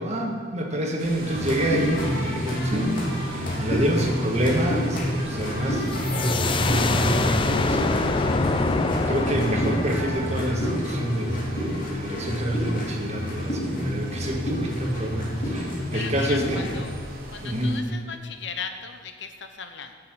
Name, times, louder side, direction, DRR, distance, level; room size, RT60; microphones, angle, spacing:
voice 1, 0.0-2.9 3.3-8.1 9.1-16.6 17.4-17.8, right 1 dB, 35° right, 1 dB, 1.5 m, -27 dB
sound 1, 1.0-17.8, right 1 dB, 50° right, 1.8 m, -42 dB
sound 2, 1.2-16.9, equal, 45° left, 2.4 m, -29 dB
sound 3, 5.9-11.5, left 3 dB, 25° left, 0.4 m, -26 dB
voice 2, 15.9-16.9 17.3-19.9, left 6 dB, 60° left, 7 dB, 0.8 m, -37 dB
9.8 x 6.8 x 7.4 m, 2.1 s
head